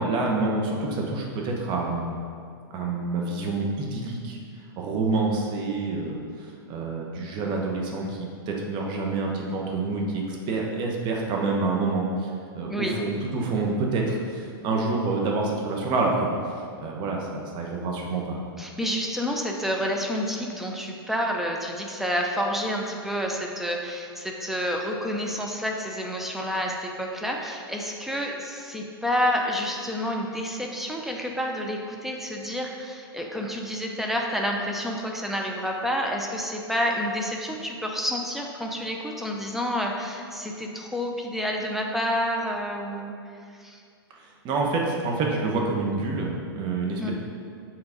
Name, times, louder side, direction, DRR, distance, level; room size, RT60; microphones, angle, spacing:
voice 1, 0.0-2.2 2.7-4.4 4.8-16.3 16.8-18.4 44.4-47.1, right 3 dB, 35° right, -1 dB, 1.2 m, -27 dB
voice 2, 18.6-43.2 43.6-43.8 47.0-47.1, equal, ahead, 0 dB, 0.6 m, -29 dB
7.2 x 3.8 x 5.1 m, 2.3 s
hypercardioid pair, 125°, 13 cm